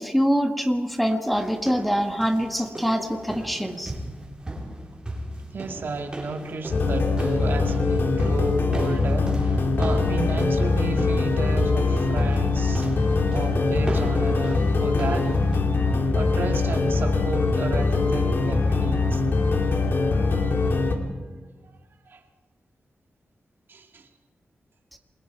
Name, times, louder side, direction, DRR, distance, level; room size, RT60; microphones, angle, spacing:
voice 1, 0.0-3.9, equal, ahead, 5 dB, 1.6 m, -24 dB
sound 1, 1.3-15.6, right 1 dB, 20° right, 4.2 m, -37 dB
voice 2, 5.5-12.9 13.3-15.6 15.9-19.2 20.7-20.8 21.0-21.1 22.1-22.2 23.7-24.1, right 3 dB, 65° right, 4 dB, 2.2 m, -33 dB
sound 2, 6.7-21.0, left 3 dB, 65° left, 2.6 m, -22 dB
28.5 x 21.0 x 4.7 m, 1.4 s
wide cardioid pair, 125°, 4 cm